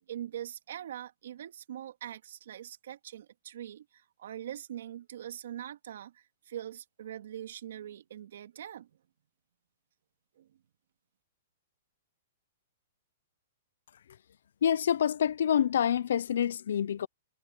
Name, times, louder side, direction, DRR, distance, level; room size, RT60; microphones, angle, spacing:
voice 1, 0.0-8.9 10.4-10.5, right 11 dB, 65° right, 3.0 m, -43 dB
voice 2, 14.6-17.1, left 9 dB, 75° left, 0.6 m, -27 dB
hypercardioid pair, 165°, 0 cm